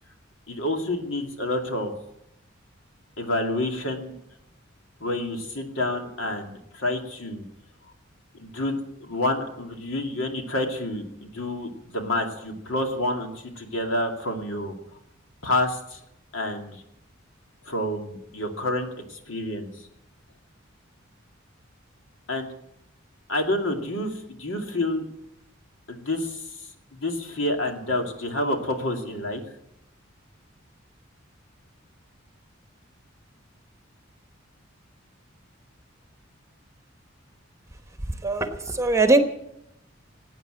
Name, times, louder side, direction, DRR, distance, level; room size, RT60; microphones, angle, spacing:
voice 1, 0.5-1.9 3.2-4.1 5.0-7.4 8.3-14.8 15.4-16.0 16.3-16.8 17.7-19.7 22.3-22.5 23.3-25.1 25.9-26.4 26.9-29.4, left 1 dB, 70° left, 3 dB, 2.5 m, -28 dB
voice 2, 38.2-39.2, right 2 dB, 15° right, 7 dB, 1.1 m, -20 dB
18.0 x 9.1 x 7.7 m, 0.81 s
head